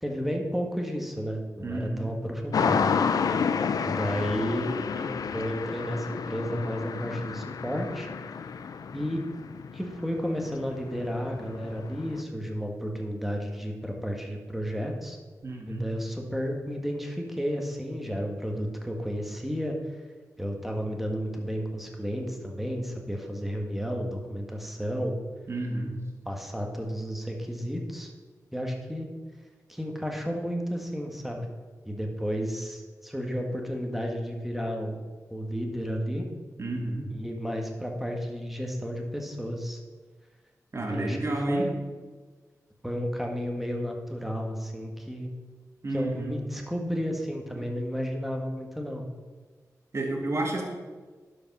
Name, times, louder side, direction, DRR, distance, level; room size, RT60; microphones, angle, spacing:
voice 1, 0.0-3.4 3.8-4.7 5.0-8.1 8.9-9.2 9.7-15.2 15.7-19.8 20.4-25.1 26.2-28.1 28.5-29.1 29.7-31.5 31.8-35.0 35.3-36.2 37.1-39.8 40.8-41.7 42.8-45.3 45.9-49.0, equal, 5° right, 1 dB, 1.6 m, -32 dB
voice 2, 1.6-2.1 15.4-15.9 25.5-25.9 36.6-37.1 40.7-41.7 45.8-46.4 47.5-47.6 49.9-50.6, right 2 dB, 45° right, 1 dB, 2.0 m, -31 dB
sound 1, 2.5-12.2, left 6 dB, 80° left, 0.5 m, -31 dB
11.0 x 5.1 x 5.5 m, 1.4 s
cardioid pair, 75°, 6 cm